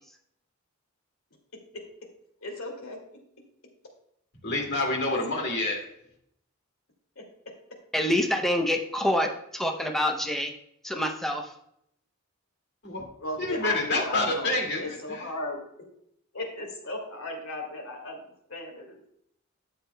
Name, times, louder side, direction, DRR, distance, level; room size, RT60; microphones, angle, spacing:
voice 1, 1.5-2.1 2.4-3.2 5.1-5.2 7.2-7.6 13.2-14.5 14.8-15.9 16.3-19.1, left 1 dB, 70° left, 2 dB, 2.4 m, -37 dB
voice 2, 4.4-5.8 12.8-13.0 13.4-14.8 15.1-15.2, left 2 dB, 50° left, 0 dB, 2.3 m, -27 dB
voice 3, 7.9-10.5 10.8-11.5, left 1 dB, ahead, 3 dB, 0.7 m, -26 dB
12.0 x 8.1 x 2.3 m, 0.74 s
head